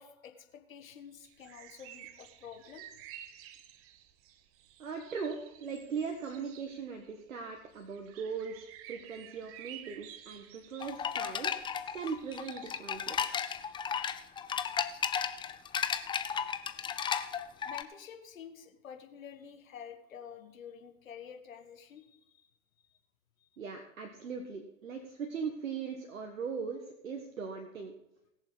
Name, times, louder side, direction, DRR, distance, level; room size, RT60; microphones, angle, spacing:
voice 1, 0.0-2.9 17.6-22.5 23.4-23.5, left 8 dB, 80° left, 6 dB, 1.7 m, -49 dB
sound 1, 1.2-12.8, right 11 dB, 35° right, 1.0 m, -53 dB
voice 2, 4.8-11.5 11.9-13.4 23.6-27.9, right 5 dB, 85° right, 4 dB, 1.5 m, -39 dB
sound 2, 10.8-17.8, left 7 dB, 10° left, 0.5 m, -34 dB
20.5 x 7.2 x 4.0 m, 0.85 s
hypercardioid pair, 105°, 39 cm